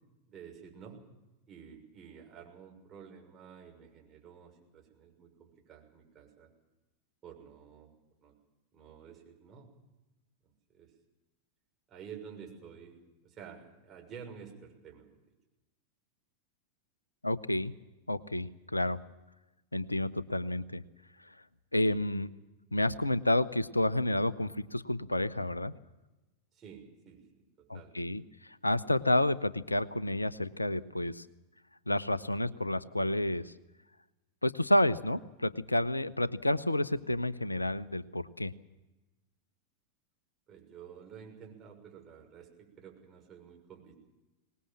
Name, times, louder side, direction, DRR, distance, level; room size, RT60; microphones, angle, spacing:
voice 1, 0.3-1.0 1.5-6.5 7.2-7.9 8.2-8.3 8.7-9.7 10.7-10.9 11.9-15.2 26.5-27.9 40.5-43.9, right 7 dB, 25° right, 1 dB, 6.4 m, -51 dB
voice 2, 17.2-17.7 18.1-19.0 19.7-20.8 21.7-22.3 22.7-25.7 27.7-31.2 31.9-33.5 34.4-38.5, left 1 dB, 85° left, 19 dB, 0.7 m, -30 dB
24.5 x 20.0 x 7.4 m, 1.1 s
figure-of-eight pair, 90°, 0 cm